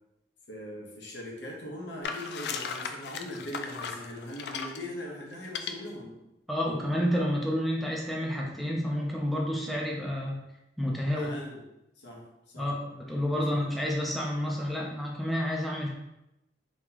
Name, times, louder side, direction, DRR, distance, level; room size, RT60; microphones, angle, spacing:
voice 1, 0.5-6.2 11.1-11.6 12.0-12.3 12.5-12.7 13.3-13.6, left 1 dB, 80° left, -2 dB, 1.0 m, -40 dB
sound 1, 2.0-4.8 5.4-5.7, left 6 dB, 65° left, 0.3 m, -36 dB
voice 2, 6.5-10.4 10.8-11.3 12.6-15.9, equal, ahead, -2 dB, 0.5 m, -29 dB
3.0 x 2.8 x 3.8 m, 0.88 s
head